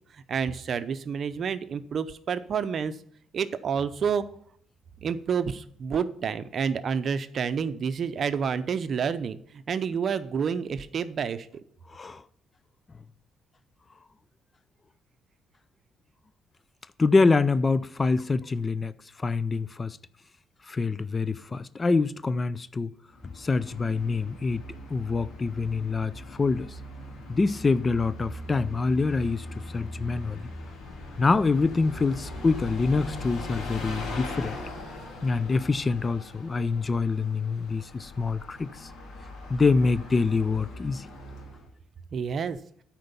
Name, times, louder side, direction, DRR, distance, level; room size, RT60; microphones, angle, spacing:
voice 1, 0.1-3.0 3.3-4.2 5.0-11.6 42.1-42.6, right 6 dB, 55° right, 0.6 m, -29 dB
voice 2, 11.9-12.2 17.0-18.9 19.2-20.0 20.7-22.9 23.4-24.6 24.9-26.7 27.3-29.5 29.7-30.5 31.2-34.6 35.2-38.9 39.5-41.1, left 4 dB, 30° left, 0.4 m, -25 dB
Bus, 23.1-41.7, left 1 dB, 85° left, 2.4 m, -40 dB
9.3 x 4.5 x 6.8 m
cardioid pair, 90°, 0 cm